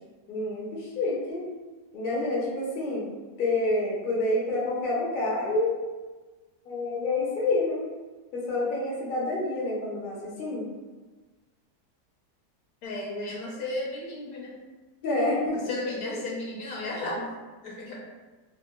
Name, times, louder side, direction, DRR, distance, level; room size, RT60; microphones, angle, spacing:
voice 1, 0.3-1.4 1.9-3.1 3.4-5.7 6.6-7.8 8.3-10.6 15.0-15.6 16.0-16.2, left 2 dB, 50° left, -4 dB, 0.7 m, -28 dB
voice 2, 12.8-14.6 15.5-17.3 17.6-18.0, left 2 dB, 70° left, -3 dB, 1.1 m, -34 dB
3.7 x 2.2 x 2.2 m, 1.3 s
omnidirectional pair, 1.7 m